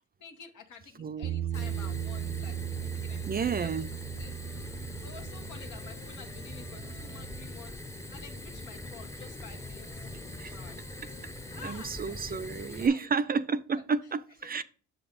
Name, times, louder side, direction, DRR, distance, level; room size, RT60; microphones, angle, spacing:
voice 1, 0.2-2.6 2.8-3.7 4.1-4.3 5.0-7.8 8.1-10.1 10.5-10.8 11.5-13.1 13.7-13.8 14.4-14.6, left 6 dB, 80° left, 1.5 m, -50 dB
voice 2, 1.0-1.4 3.3-3.9 10.4-10.6 11.6-14.6, right 5 dB, 30° right, 0.4 m, -31 dB
Bass guitar, 1.2-7.5, right 11 dB, 85° right, 0.5 m, -37 dB
Fire, 1.5-12.9, left 1 dB, 10° left, 0.7 m, -42 dB
Wind instrument woodwind instrument, 4.1-8.0 8.8-12.5, left 6 dB, 65° left, 1.6 m, -59 dB
7.0 x 3.9 x 5.2 m
cardioid pair, 90°, 30 cm